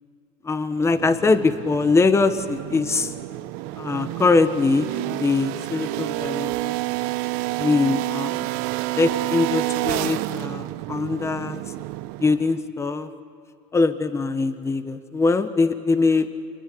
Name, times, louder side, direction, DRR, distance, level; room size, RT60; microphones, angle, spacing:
voice 1, 0.4-3.1 3.8-6.7 7.0-7.1 7.6-8.5 9.0-11.6 12.2-13.1 13.7-16.3, left 3 dB, 15° left, 11 dB, 1.3 m, -22 dB
sound 1, 0.8-12.6, right 18 dB, 65° right, 0.8 m, -29 dB
27.5 x 21.0 x 6.8 m, 2.4 s
supercardioid pair, 105°, 16 cm